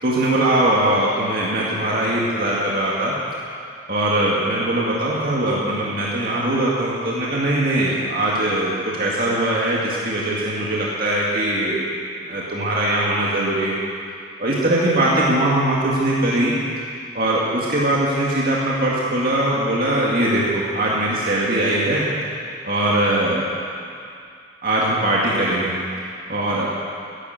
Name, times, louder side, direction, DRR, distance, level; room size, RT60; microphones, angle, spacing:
voice 1, 0.0-3.1 3.9-11.8 12.3-13.8 14.4-16.5 17.1-22.0 22.6-23.4 24.6-25.7 26.3-26.7, right 1 dB, 45° right, -6 dB, 2.2 m, -21 dB
16.0 x 11.0 x 7.9 m, 2.4 s
head